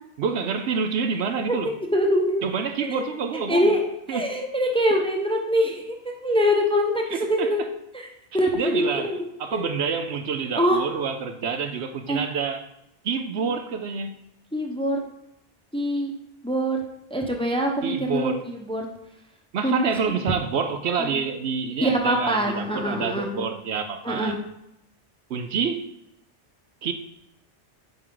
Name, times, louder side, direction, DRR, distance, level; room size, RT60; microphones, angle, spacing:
voice 1, 0.2-1.7 2.4-3.7 4.1-4.2 7.1-7.5 8.5-9.1 9.4-12.6 13.0-14.2 17.8-18.4 19.5-24.4 25.3-25.9 26.8-26.9, right 6 dB, 70° right, 0.9 m, -27 dB
voice 2, 1.5-2.4 2.8-7.6 7.9-8.1 8.3-9.2 9.5-9.7 10.5-10.8 12.1-12.2 14.5-15.0 15.7-16.1 16.4-16.8 17.1-18.9 19.6-20.2 21.0-21.2 21.8-23.4 24.0-24.4, equal, 5° left, 0.8 m, -24 dB
9.2 x 4.7 x 3.8 m
omnidirectional pair, 1.2 m